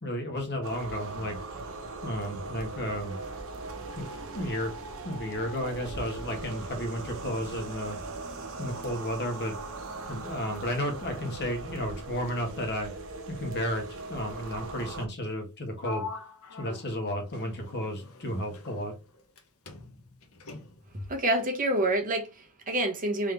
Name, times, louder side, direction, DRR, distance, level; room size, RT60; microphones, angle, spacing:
voice 1, 0.0-1.4 2.0-3.1 3.9-4.7 5.0-8.0 8.6-9.6 10.1-12.9 13.3-16.1 16.6-18.9, equal, 50° left, 1.4 m, -33 dB
sound 1, 0.6-15.1, right 3 dB, 65° right, 0.9 m, -39 dB
Sliding door, 15.8-19.4 19.7-21.0, left 4 dB, 65° left, 0.8 m, -43 dB
voice 2, 21.1-23.3, right 1 dB, 40° right, 1.1 m, -27 dB
3.8 x 3.1 x 3.3 m
head